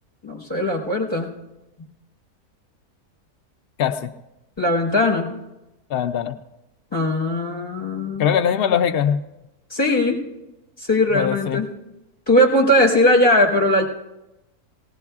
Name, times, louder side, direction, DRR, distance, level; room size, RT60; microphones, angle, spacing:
voice 1, 0.2-1.3 4.6-5.3 6.9-8.3 9.7-10.2 10.8-11.7 12.3-13.9, left 1 dB, 15° left, -2 dB, 4.1 m, -19 dB
voice 2, 3.8-4.1 5.9-6.4 8.2-9.2 11.1-11.6, left 8 dB, 85° left, 7 dB, 0.5 m, -21 dB
19.5 x 18.5 x 2.4 m, 0.96 s
omnidirectional pair, 1.6 m